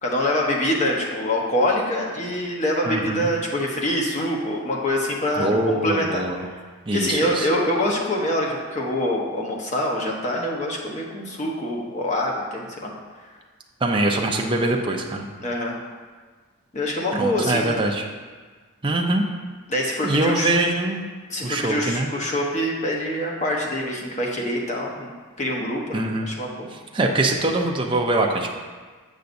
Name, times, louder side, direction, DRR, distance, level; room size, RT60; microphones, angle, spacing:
voice 1, 0.0-6.5 6.9-12.9 15.4-15.8 16.7-17.7 19.7-20.5 21.3-25.1 25.4-26.7, left 1 dB, 35° left, -2 dB, 0.9 m, -25 dB
voice 2, 2.9-3.3 5.4-6.5 6.9-7.5 13.8-15.3 17.2-18.0 18.8-19.2 20.0-21.1 21.4-22.1 25.9-26.3 26.9-28.6, right 2 dB, 25° right, 0 dB, 0.5 m, -23 dB
8.1 x 5.6 x 2.6 m, 1.5 s
head